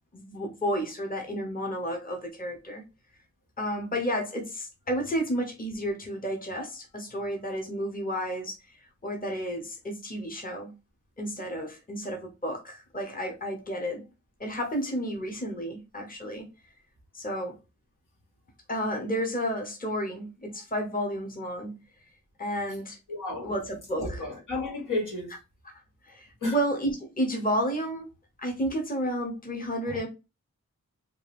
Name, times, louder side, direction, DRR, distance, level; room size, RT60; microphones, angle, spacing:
voice 1, 0.1-2.8 3.6-10.7 11.2-14.0 14.4-16.5 17.1-17.6 18.7-21.7 22.4-23.0 23.4-24.3 26.0-28.1 28.4-30.1, equal, 30° left, 1.0 m, -31 dB
voice 2, 23.1-23.5 23.9-25.3 26.4-26.5 29.9-30.0, left 2 dB, 80° left, 1.9 m, -32 dB
3.7 x 2.5 x 3.4 m
wide cardioid pair, 95°, 31 cm